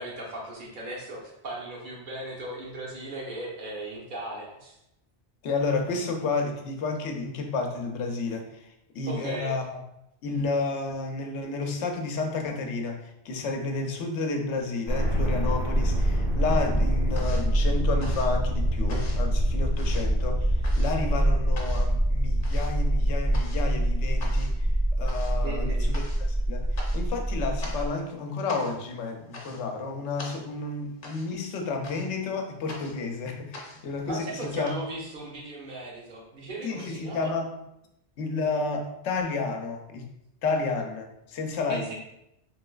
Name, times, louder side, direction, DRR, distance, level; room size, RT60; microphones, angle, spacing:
voice 1, 0.0-4.8 9.1-9.5 25.4-25.9 34.1-37.3 41.7-41.9, right 2 dB, 50° right, -3 dB, 0.9 m, -37 dB
voice 2, 5.4-9.6 10.2-24.7 25.0-26.0 26.3-34.7 36.6-37.5 38.2-40.1 40.4-41.8, left 3 dB, 90° left, 3 dB, 0.9 m, -31 dB
sound 1, 14.9-27.9, right 1 dB, 30° right, 0.5 m, -25 dB
sound 2, 15.4-16.2 16.4-34.7, left 2 dB, 55° left, 0.8 m, -45 dB
3.2 x 2.9 x 2.3 m, 0.84 s
omnidirectional pair, 1.1 m